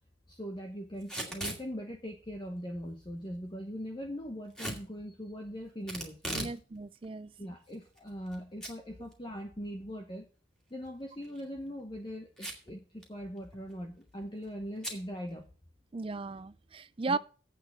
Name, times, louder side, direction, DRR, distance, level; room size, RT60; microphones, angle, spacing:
voice 1, 0.3-6.5 7.4-10.3 10.7-15.5 17.1-17.2, equal, 25° left, 1.0 m, -41 dB
Packing tape duct tape / Tearing, 1.0-1.6 4.5-4.8 5.9-6.6 6.9-7.0 7.7-8.3 8.6-8.7 9.1-9.2 11.2-11.4 12.4-12.7 13.0-13.1 13.4-13.7 14.8-15.0, right 1 dB, 5° left, 2.3 m, -38 dB
voice 2, 6.3-7.3 15.9-17.2, right 4 dB, 30° right, 0.4 m, -36 dB
8.3 x 6.6 x 7.9 m
head